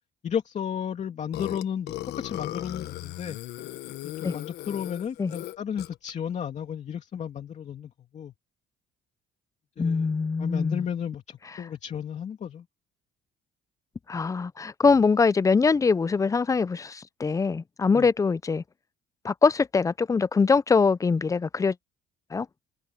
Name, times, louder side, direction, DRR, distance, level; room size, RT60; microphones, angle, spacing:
voice 1, 0.2-3.4 4.0-8.3 9.8-12.6 17.9-18.1, left 8 dB, 45° left, 2.6 m, -33 dB
Burping eructation, 1.3-6.1, left 16 dB, 80° left, 1.3 m, -37 dB
voice 2, 9.8-10.8 14.1-18.6 19.2-21.8 22.3-22.5, left 4 dB, 20° left, 0.5 m, -23 dB
cardioid pair, 110°, 17 cm